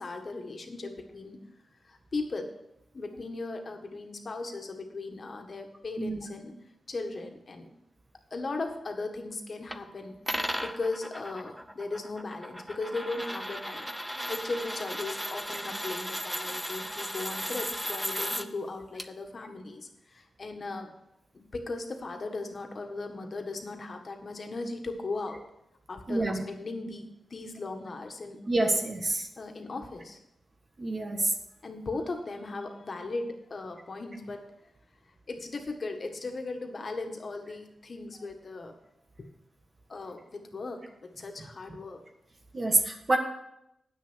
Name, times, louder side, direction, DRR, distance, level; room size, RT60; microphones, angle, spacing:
voice 1, 0.0-1.4 1.8-2.5 2.9-6.5 6.9-7.7 8.3-10.2 10.6-13.9 14.3-20.9 21.3-25.4 25.9-27.0 27.3-28.4 29.4-30.2 31.6-34.5 35.3-38.7 39.2-39.3 39.9-42.0, left 3 dB, 55° left, 4 dB, 1.6 m, -37 dB
sound 1, 9.7-9.8 10.3-18.4 19.0-19.1, equal, ahead, 0.7 m, -36 dB
voice 2, 26.1-26.4 28.5-29.3 30.8-31.3 42.5-43.2, right 2 dB, 40° right, 3 dB, 1.5 m, -27 dB
9.2 x 6.5 x 6.3 m, 0.83 s
cardioid pair, 55°, 0 cm